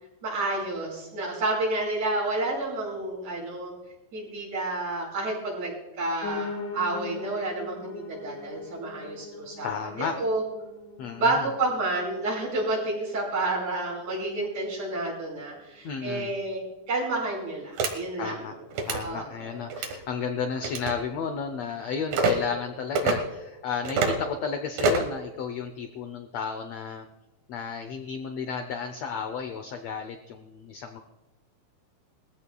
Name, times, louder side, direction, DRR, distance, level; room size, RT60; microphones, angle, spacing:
voice 1, 0.2-3.7 4.1-9.7 10.0-10.4 11.2-18.4 19.0-19.6, right 2 dB, 55° right, -4 dB, 6.3 m, -30 dB
Piano, 6.2-15.3 15.7-16.9 17.2-17.3 17.5-17.6 17.8-17.9 18.5-18.6, left 3 dB, 70° left, 3.1 m, -41 dB
voice 2, 9.6-10.2 11.0-11.5 15.8-16.3 18.2-18.5 18.9-27.1 27.5-31.0, left 6 dB, 90° left, 7 dB, 1.4 m, -33 dB
sound 1, 17.8-17.9 18.7-19.0 19.7-20.0 20.6-20.9 22.1-22.3 23.0-23.2 23.9-24.2 24.8-25.1, right 4 dB, 80° right, 3.2 m, -25 dB
21.5 x 15.0 x 2.3 m, 1.0 s
omnidirectional pair, 4.0 m